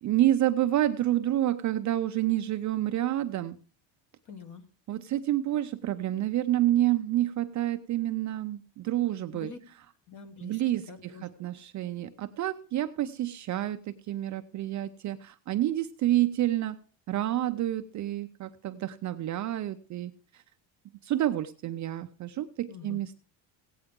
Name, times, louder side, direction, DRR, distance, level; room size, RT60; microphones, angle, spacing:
voice 1, 0.0-3.6 4.9-9.5 10.4-16.8 17.1-20.4 21.0-23.2, right 13 dB, 40° right, 8 dB, 0.5 m, -29 dB
voice 2, 4.3-4.6 9.3-9.6 10.1-10.6 10.9-11.2 22.7-23.0, left 5 dB, 35° left, 9 dB, 1.5 m, -45 dB
16.5 x 9.0 x 3.7 m, 0.38 s
cardioid pair, 160°, 49 cm